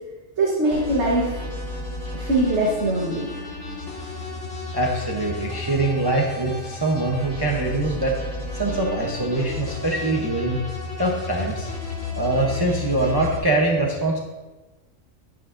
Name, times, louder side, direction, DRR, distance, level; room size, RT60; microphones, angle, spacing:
voice 1, 0.4-1.3 2.1-3.3, right 2 dB, 60° right, -4 dB, 1.7 m, -22 dB
sound 1, 0.7-13.4, left 3 dB, 75° left, 3.3 m, -33 dB
voice 2, 4.7-8.2 8.5-10.6 11.0-11.7 12.2-14.2, right 2 dB, 20° right, -1 dB, 0.8 m, -23 dB
10.5 x 10.0 x 2.6 m, 1.2 s
omnidirectional pair, 1.3 m